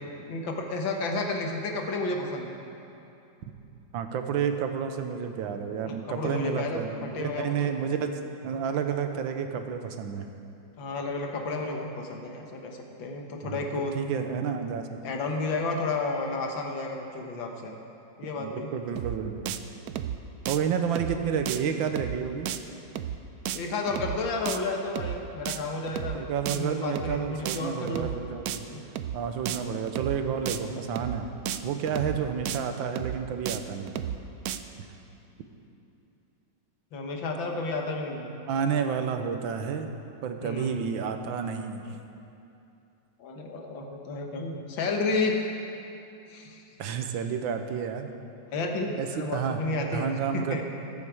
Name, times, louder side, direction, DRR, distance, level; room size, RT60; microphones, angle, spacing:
voice 1, 0.3-2.6 5.9-6.8 7.1-7.6 10.8-14.0 15.0-17.8 18.2-18.7 23.5-26.2 26.5-28.1 28.7-28.8 36.9-38.4 40.4-40.7 43.2-45.4 46.3-46.6 48.5-50.6, left 3 dB, 80° left, 2 dB, 2.0 m, -31 dB
voice 2, 3.9-10.2 13.4-13.6 13.9-15.0 18.4-19.5 20.5-22.5 26.1-28.6 29.1-31.3 31.6-33.9 38.5-39.9 40.2-41.8 46.8-48.1 49.0-49.6 49.9-50.6, right 7 dB, 90° right, 6 dB, 1.6 m, -30 dB
sound 1, 19.0-19.2 19.5-19.6 19.9-20.2 20.4-20.6 21.0-21.2 21.5-21.6 21.9-22.2 22.5-22.6 23.0-23.2 23.4-23.6 23.9-24.2 24.5-24.6 25.0-25.2 25.5-25.6 25.9-26.2 26.5-26.6 27.0-27.2 27.4-27.6 27.9-28.2 28.5-28.6 29.0-29.2 29.4-29.6 29.9-30.2 30.5-30.6 31.0-31.2 31.5-31.6 31.9-32.2 32.4-32.6 33.0-33.2 33.5-33.6 33.9-34.2 34.4-34.6, right 10 dB, 75° right, 0.9 m, -32 dB
20.5 x 7.6 x 4.8 m, 2.8 s
omnidirectional pair, 2.1 m